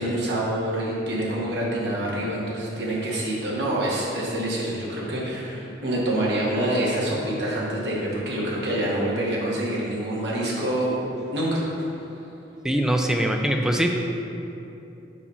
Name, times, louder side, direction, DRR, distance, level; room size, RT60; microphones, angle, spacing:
voice 1, 0.0-11.0 11.3-12.1, right 1 dB, 70° right, -5 dB, 1.7 m, -26 dB
voice 2, 12.6-13.9, right 1 dB, 5° right, 2 dB, 0.4 m, -22 dB
7.1 x 4.2 x 5.6 m, 2.8 s
head